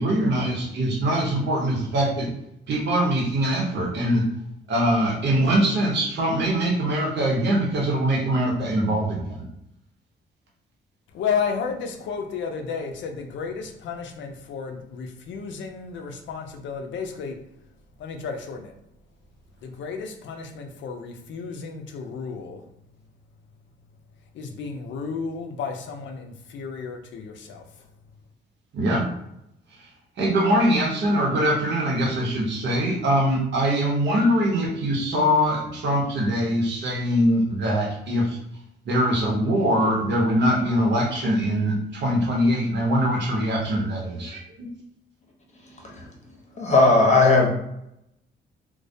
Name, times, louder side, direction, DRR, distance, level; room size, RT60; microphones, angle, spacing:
voice 1, 0.0-2.3 2.7-4.2 4.7-9.4 28.7-29.1 30.2-38.4 38.8-44.7, equal, 60° right, -2 dB, 0.9 m, -22 dB
voice 2, 11.1-17.3 18.0-18.7 19.6-22.6 24.3-27.6, left 6 dB, 70° left, 4 dB, 0.5 m, -32 dB
voice 3, 46.6-47.5, left 3 dB, 35° left, 0 dB, 0.7 m, -17 dB
2.3 x 2.1 x 2.6 m, 0.80 s
cardioid pair, 90°, 20 cm